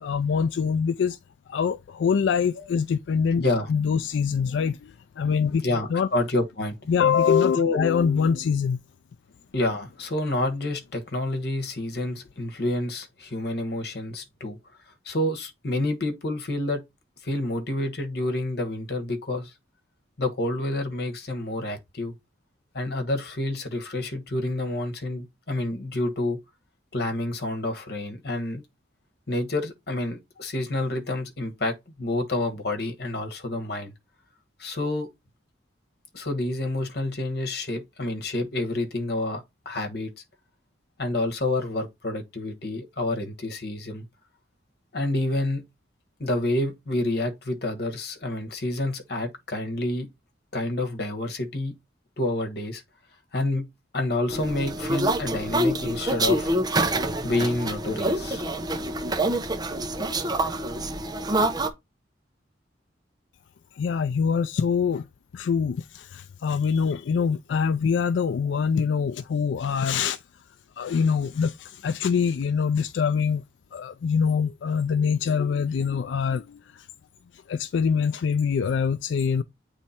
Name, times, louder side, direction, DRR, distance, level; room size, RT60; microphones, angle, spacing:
voice 1, 0.0-1.2 1.5-3.4 3.7-5.6 5.9-6.1 6.9-8.8 63.7-65.0 65.3-70.2 70.8-73.4 73.7-76.9 77.5-79.4, left 6 dB, 80° left, 0.3 m, -24 dB
voice 2, 3.4-3.7 5.6-6.8 7.5-7.8 9.5-14.6 15.0-16.8 17.2-19.5 20.2-22.1 22.7-26.4 26.9-28.6 29.3-33.9 34.6-35.1 36.1-40.1 41.0-44.0 44.9-45.6 46.2-50.1 50.5-51.7 52.2-52.8 53.3-53.7 53.9-56.6 57.2-58.4, left 2 dB, 60° left, 1.3 m, -28 dB
sound 1, 54.3-61.7, right 1 dB, 20° right, 0.7 m, -26 dB
8.2 x 3.3 x 4.2 m
head